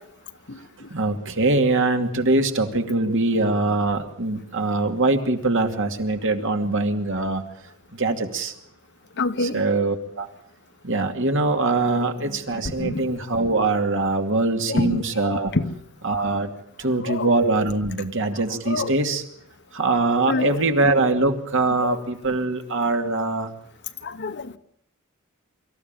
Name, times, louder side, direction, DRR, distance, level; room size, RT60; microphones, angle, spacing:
voice 1, 0.9-7.4 7.9-8.5 9.4-10.3 10.8-15.5 16.0-16.5 16.8-19.2 19.7-23.5, right 2 dB, 60° right, 5 dB, 2.5 m, -23 dB
voice 2, 9.2-9.6 12.8-13.0 14.7-15.0 15.5-15.7 17.0-17.3 18.7-18.9 20.3-20.6 21.8-22.0 24.0-24.6, left 3 dB, 55° left, 10 dB, 1.2 m, -26 dB
25.0 x 14.5 x 9.1 m, 0.71 s
head